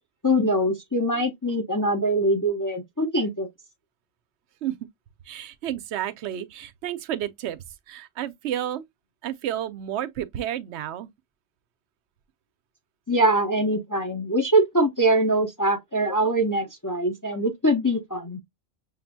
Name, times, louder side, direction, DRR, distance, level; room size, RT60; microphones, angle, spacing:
voice 1, 0.2-3.5 13.1-18.4, right 1 dB, 20° left, 0.6 m, -23 dB
voice 2, 5.2-8.8 9.2-11.1, right 11 dB, 65° right, 0.8 m, -31 dB
6.6 x 2.6 x 2.6 m
omnidirectional pair, 1.4 m